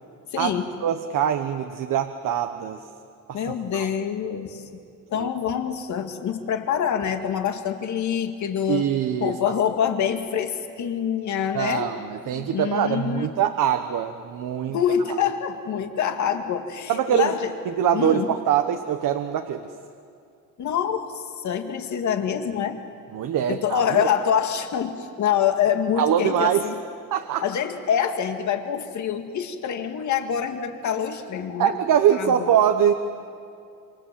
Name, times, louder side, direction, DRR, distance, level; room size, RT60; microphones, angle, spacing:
voice 1, 0.3-0.7 3.3-4.7 5.1-8.9 9.2-11.9 12.2-13.3 14.7-17.5 17.9-18.3 20.6-22.8 23.5-26.8 27.4-31.8 32.2-32.5, left 8 dB, 55° left, 6 dB, 2.1 m, -26 dB
voice 2, 0.8-2.8 3.3-3.4 3.7-3.9 5.1-5.3 8.7-9.3 11.5-14.8 16.9-17.3 17.8-19.7 23.1-24.1 26.0-26.6 27.1-27.4 31.6-32.9, right 9 dB, 70° right, 6 dB, 1.2 m, -23 dB
28.0 x 26.5 x 7.7 m, 2.4 s
cardioid pair, 160°, 34 cm